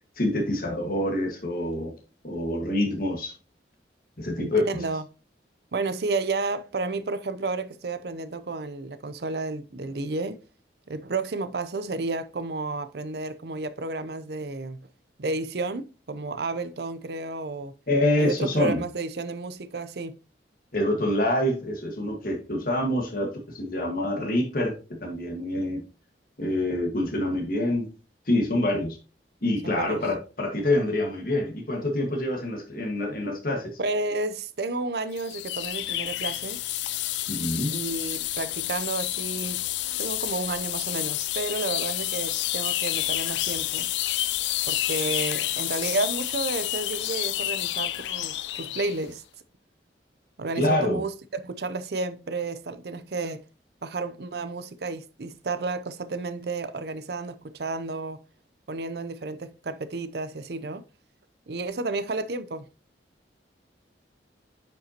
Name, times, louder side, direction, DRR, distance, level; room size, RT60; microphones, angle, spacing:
voice 1, 0.2-1.9 2.2-3.3 4.2-4.6 17.9-18.8 20.7-23.3 23.5-25.8 26.4-27.9 28.3-29.0 29.4-33.7 37.3-37.8 50.5-51.0, left 1 dB, 50° left, 1.6 m, -26 dB
voice 2, 4.4-5.0 5.7-10.4 10.9-14.9 15.2-17.7 18.2-20.1 29.6-30.0 33.8-36.6 37.7-39.6 40.0-43.9 44.7-49.2 50.4-53.4 53.8-58.2 58.7-60.8 61.5-62.6, right 3 dB, 60° right, 0.6 m, -31 dB
sound 1, 35.2-49.0, left 15 dB, 80° left, 0.4 m, -29 dB
9.0 x 5.4 x 2.9 m
head